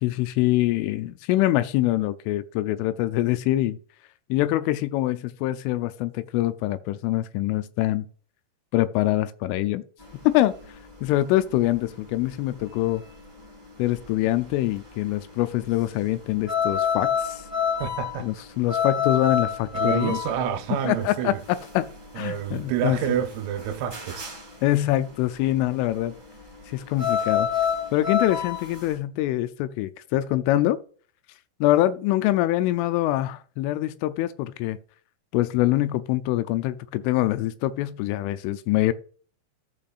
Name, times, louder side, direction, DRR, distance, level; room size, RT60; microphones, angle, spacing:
voice 1, 0.0-3.8 4.3-8.1 8.7-9.8 10.2-13.0 13.8-17.4 18.2-20.2 20.8-21.9 22.2-23.0 24.6-26.1 26.7-27.5 27.9-30.8 31.6-34.8 35.3-38.9, left 15 dB, 85° left, 3.0 m, -24 dB
sound 1, 10.0-28.9, left 7 dB, 20° right, 1.1 m, -29 dB
voice 2, 17.8-18.3 19.7-21.4 22.2-24.3, right 9 dB, 85° right, 3.5 m, -28 dB
14.0 x 5.3 x 2.4 m
omnidirectional pair, 5.8 m